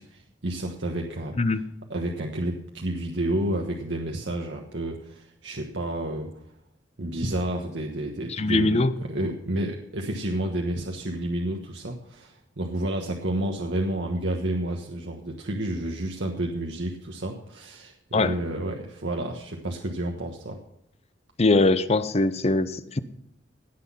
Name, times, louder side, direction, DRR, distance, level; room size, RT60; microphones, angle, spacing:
voice 1, 0.0-1.3 1.9-6.3 7.0-20.6, right 1 dB, 70° right, 1 dB, 1.3 m, -30 dB
voice 2, 8.3-8.9 18.1-18.4 21.4-23.0, left 2 dB, 35° left, 13 dB, 0.7 m, -22 dB
17.5 x 6.2 x 5.7 m, 0.77 s
head